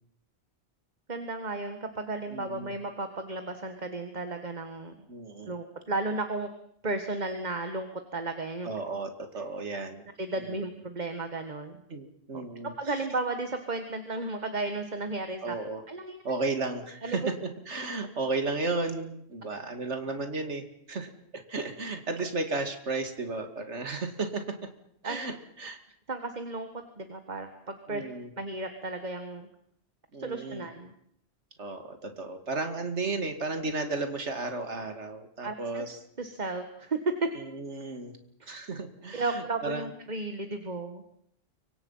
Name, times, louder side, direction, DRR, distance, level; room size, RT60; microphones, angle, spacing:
voice 1, 1.1-4.9 5.5-6.5 6.8-7.9 8.1-8.8 10.2-11.8 12.3-12.4 12.8-15.6 15.9-16.2 17.0-17.3 25.0-25.2 26.1-28.0 28.4-29.5 30.2-30.9 35.4-35.8 36.2-37.3 38.4-38.6 39.1-41.0, right 3 dB, 40° right, 7 dB, 1.9 m, -34 dB
voice 2, 2.3-2.7 5.1-5.6 8.6-10.1 10.4-10.5 11.9-13.0 15.4-15.8 16.2-24.7 25.0-25.8 27.9-28.3 30.1-30.7 31.6-36.0 37.3-38.1 38.5-39.9, right 3 dB, 75° right, 7 dB, 2.6 m, -34 dB
29.0 x 24.5 x 5.7 m, 0.71 s
omnidirectional pair, 1.2 m